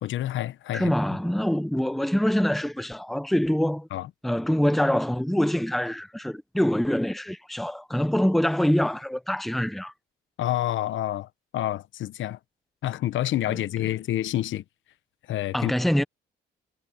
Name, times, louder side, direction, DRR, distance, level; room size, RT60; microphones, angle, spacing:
voice 1, 0.0-0.9 3.9-4.1 10.4-12.4 12.8-14.6 15.3-15.7, left 13 dB, 75° left, 1.0 m, -28 dB
voice 2, 0.7-3.9 4.2-9.9 13.5-13.9 15.5-16.0, equal, ahead, 0.9 m, -25 dB
cardioid pair, 90°, 20 cm